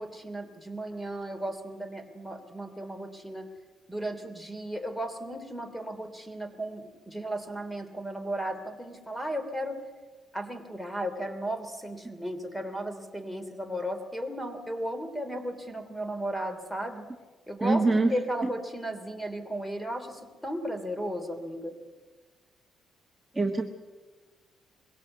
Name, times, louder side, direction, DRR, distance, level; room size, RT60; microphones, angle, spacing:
voice 1, 0.0-3.5 3.9-9.8 10.3-17.0 17.5-17.8 18.1-21.8, right 1 dB, 5° left, 8 dB, 3.1 m, -35 dB
voice 2, 17.6-18.1 23.3-23.6, right 3 dB, 15° right, 2 dB, 1.4 m, -23 dB
22.0 x 17.0 x 8.1 m, 1.3 s
cardioid pair, 90°, 0 cm